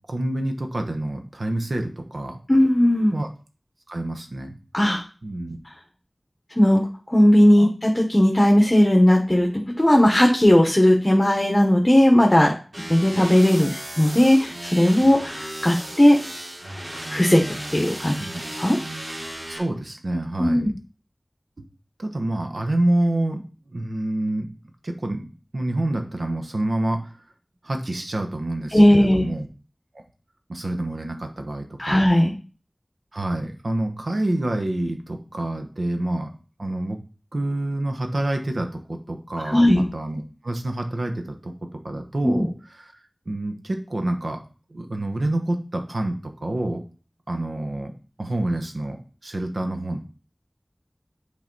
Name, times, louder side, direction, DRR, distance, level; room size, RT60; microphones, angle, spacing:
voice 1, 0.1-2.4 3.1-3.3 3.9-4.6 5.2-5.6 7.6-7.7 13.1-13.2 18.2-18.4 19.4-20.7 22.0-23.4 23.7-24.5 24.8-27.1 27.6-29.5 30.5-32.0 33.1-36.3 36.6-37.0 37.3-42.5 42.8-42.9 43.3-44.4 44.7-46.8 47.3-47.9 48.2-50.0, right 1 dB, 80° right, 5 dB, 1.0 m, -27 dB
voice 2, 2.5-3.1 4.7-5.0 6.6-6.8 7.1-12.5 12.9-16.2 17.1-17.4 17.7-18.2 18.6-18.8 20.4-20.7 28.7-29.3 31.8-32.3 39.4-39.8 42.2-42.5, left 1 dB, 25° left, 1 dB, 1.1 m, -17 dB
sound 1, 12.7-19.6, right 1 dB, 60° right, 2.6 m, -35 dB
7.5 x 3.9 x 4.0 m, 0.36 s
wide cardioid pair, 45°, 0 cm